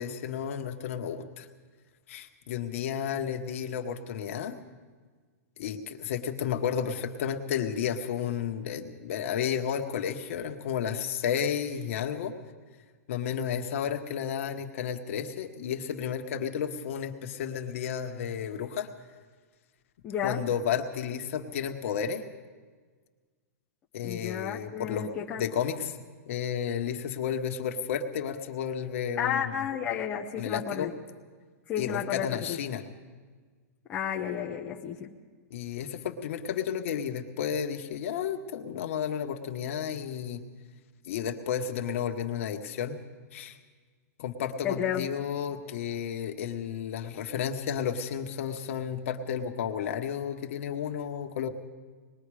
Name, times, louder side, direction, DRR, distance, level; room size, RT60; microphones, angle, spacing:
voice 1, 0.0-1.5 2.1-4.6 5.6-12.3 13.1-18.9 20.2-22.2 23.9-25.1 25.4-26.0 26.3-29.5 30.4-30.9 31.8-32.8 35.5-40.4 41.0-43.0 43.3-43.6 44.2-51.5, left 8 dB, 55° left, 4 dB, 1.5 m, -32 dB
voice 2, 20.0-20.4 24.0-25.4 29.2-30.9 31.7-32.6 33.9-35.1 44.6-45.1, left 9 dB, 15° left, -2 dB, 0.8 m, -32 dB
25.5 x 20.5 x 5.0 m, 1.5 s
supercardioid pair, 170°, 9 cm